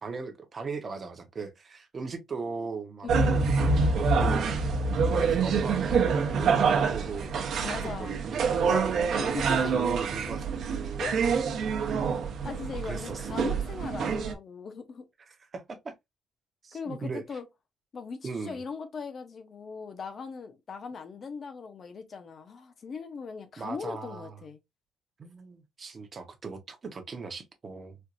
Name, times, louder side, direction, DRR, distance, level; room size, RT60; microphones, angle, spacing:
voice 1, 0.0-3.1 4.2-4.5 5.1-6.0 6.3-7.5 8.0-11.2 12.8-13.4 15.3-15.9 16.6-17.4 18.2-18.6 23.6-24.3 25.2-28.0, right 4 dB, 25° right, 0.9 m, -38 dB
voice 2, 3.0-3.5 7.6-8.2 9.2-9.7 11.0-11.2 12.4-15.1 16.7-17.5 17.9-24.6, left 5 dB, 35° left, 0.7 m, -39 dB
sound 1, 3.1-14.3, right 5 dB, 55° right, 0.9 m, -26 dB
4.4 x 2.5 x 2.5 m
cardioid pair, 160°, 0 cm